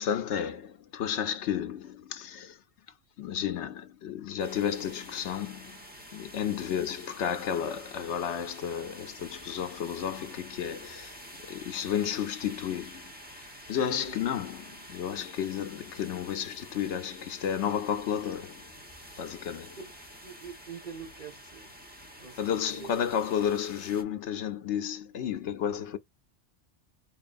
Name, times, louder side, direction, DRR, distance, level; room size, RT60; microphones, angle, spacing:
voice 1, 0.0-2.6 3.2-5.8 6.1-11.1 11.4-13.1 13.7-18.7 19.2-19.8 22.4-26.0, left 8 dB, 75° left, 0.9 m, -32 dB
sound 1, 4.4-24.0, equal, 10° right, 1.1 m, -48 dB
voice 2, 13.9-14.2 19.8-21.7 22.2-22.9, right 6 dB, 45° right, 1.4 m, -46 dB
4.6 x 3.0 x 2.5 m
omnidirectional pair, 1.2 m